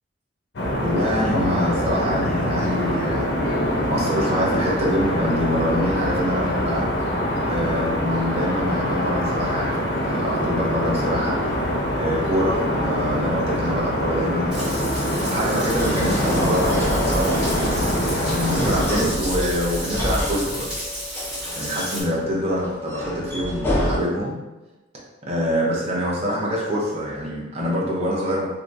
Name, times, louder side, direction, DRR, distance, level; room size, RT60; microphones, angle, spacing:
sound 1, 0.5-18.8, equal, 65° left, 0.6 m, -24 dB
voice 1, 0.8-3.3 3.9-6.9 7.5-11.4 11.9-15.0 15.2-18.0 18.2-20.7 21.6-24.4 25.2-28.5, equal, 35° right, -4 dB, 0.7 m, -25 dB
sound 2, 11.4-24.0, left 1 dB, 10° left, 0.6 m, -28 dB
Frying (food), 14.5-22.0, equal, 5° right, 1.4 m, -33 dB
3.4 x 2.8 x 2.6 m, 1.1 s
head